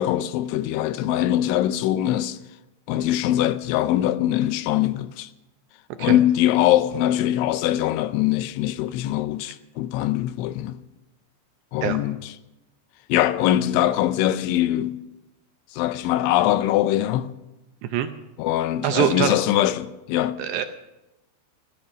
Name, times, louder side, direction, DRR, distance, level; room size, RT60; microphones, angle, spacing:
voice 1, 0.0-2.4 2.9-5.3 6.0-10.8 11.7-12.3 13.1-15.0 15.7-17.4 18.4-20.4, left 13 dB, 85° left, 3.0 m, -22 dB
voice 2, 18.8-19.4 20.4-20.7, right 11 dB, 80° right, 2.5 m, -23 dB
16.0 x 13.0 x 6.2 m
omnidirectional pair, 5.4 m